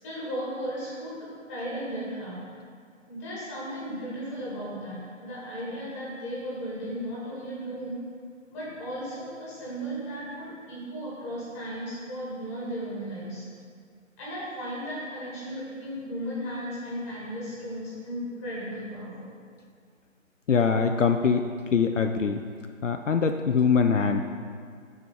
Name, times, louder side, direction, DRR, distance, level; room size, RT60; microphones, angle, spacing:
voice 1, 0.0-2.4 3.1-7.9 8.5-13.4 14.2-19.3, equal, 10° left, -8 dB, 1.6 m, -35 dB
voice 2, 20.5-21.4 21.7-22.4 22.8-24.2, left 5 dB, 65° left, 6 dB, 0.5 m, -23 dB
7.1 x 4.9 x 6.0 m, 2.1 s
figure-of-eight pair, 150°, 40 cm